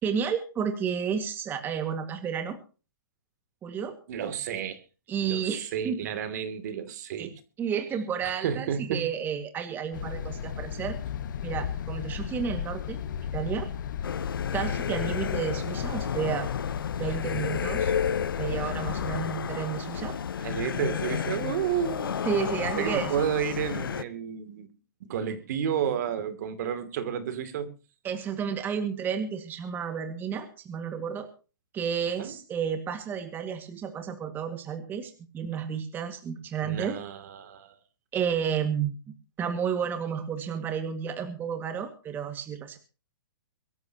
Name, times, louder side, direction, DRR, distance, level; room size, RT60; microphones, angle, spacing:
voice 1, 0.0-2.6 3.6-4.0 5.1-6.0 7.2-7.3 7.6-11.0 11.4-13.0 13.3-13.7 14.5-16.5 17.0-18.0 18.4-20.2 22.2-23.1 28.0-31.3 31.7-37.0 38.1-42.8, right 7 dB, 15° right, 2.0 m, -31 dB
voice 2, 4.1-4.8 5.3-7.3 8.2-9.1 20.4-22.2 22.8-24.7 25.0-27.7 32.2-32.3 36.6-37.8, right 8 dB, 50° right, 2.8 m, -31 dB
sound 1, 9.9-19.2, left 8 dB, 60° left, 1.4 m, -34 dB
sound 2, 14.0-24.0, left 7 dB, 80° left, 1.0 m, -32 dB
23.0 x 14.0 x 2.9 m
hypercardioid pair, 150°, 11 cm